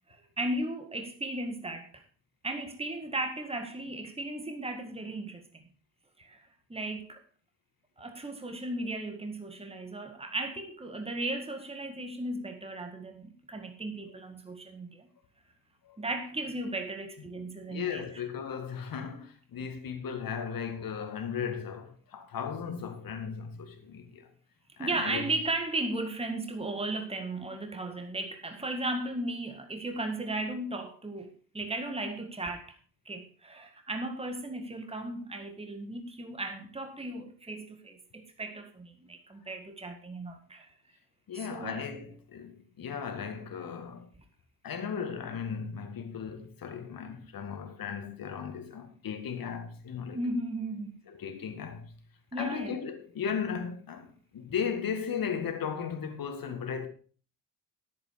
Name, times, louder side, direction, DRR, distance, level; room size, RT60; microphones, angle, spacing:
voice 1, 0.1-2.0 2.4-5.7 6.2-7.2 8.0-15.1 16.0-18.1 24.8-32.7 33.0-40.7 41.3-41.8 50.1-50.9 52.3-52.8, right 2 dB, 15° right, 1.9 m, -36 dB
voice 2, 17.7-24.3 24.8-25.2 41.3-44.1 44.6-50.2 51.1-51.9 52.3-54.1 54.3-56.9, left 7 dB, 55° left, 2.0 m, -36 dB
10.5 x 8.9 x 4.9 m
hypercardioid pair, 45°, 41 cm